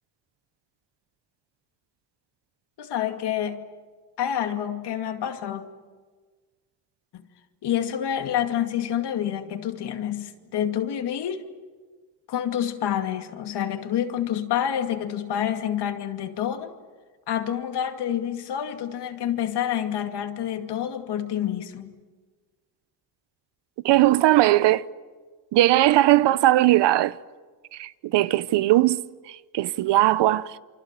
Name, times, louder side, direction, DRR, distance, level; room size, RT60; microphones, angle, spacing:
voice 1, 2.8-3.6 4.2-5.7 7.1-7.2 7.6-11.4 12.3-16.7 17.3-21.9, left 10 dB, 75° left, 2.4 m, -28 dB
voice 2, 23.8-24.8 25.5-27.1 27.7-29.0 29.3-30.6, right 15 dB, 80° right, 0.9 m, -19 dB
28.5 x 25.0 x 7.5 m
cardioid pair, 95°, 41 cm